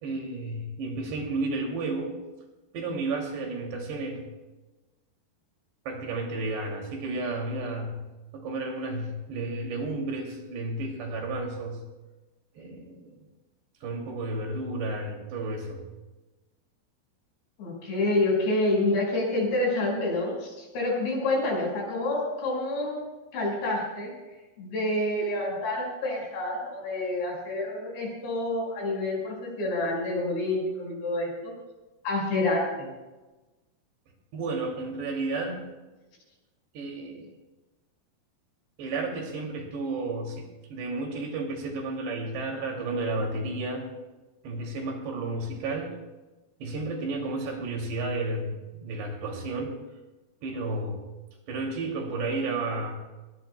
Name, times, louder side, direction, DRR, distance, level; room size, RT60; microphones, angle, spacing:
voice 1, 0.0-2.1 2.7-4.2 5.9-8.0 8.3-11.8 12.6-13.2 13.8-15.8 34.3-35.7 36.7-37.3 38.8-43.9 44.4-45.9 46.6-49.7 50.4-51.0 51.5-52.9, right 2 dB, 85° right, 1 dB, 4.8 m, -32 dB
voice 2, 17.6-23.0 23.3-24.1 24.6-31.5 32.0-32.9, left 2 dB, 85° left, -1 dB, 7.3 m, -28 dB
21.5 x 20.0 x 2.3 m, 1.1 s
omnidirectional pair, 4.8 m